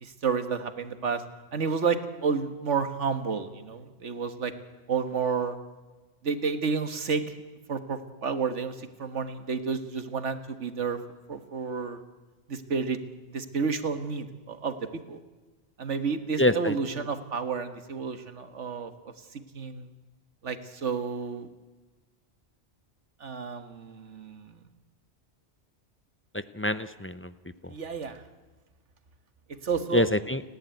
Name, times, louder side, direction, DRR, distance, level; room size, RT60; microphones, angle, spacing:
voice 1, 0.0-1.2 1.5-4.5 4.9-5.6 6.2-7.3 7.7-11.0 11.3-12.0 12.5-13.0 13.3-15.2 15.8-18.9 19.5-19.9 20.4-21.5 23.2-24.6 27.7-28.2 29.6-30.1, right 5 dB, 85° right, 9 dB, 1.8 m, -30 dB
voice 2, 16.4-17.0 26.3-27.3 27.6-27.7 29.9-30.4, left 1 dB, 15° left, 12 dB, 0.4 m, -26 dB
30.0 x 11.5 x 9.2 m, 1.3 s
omnidirectional pair, 1.2 m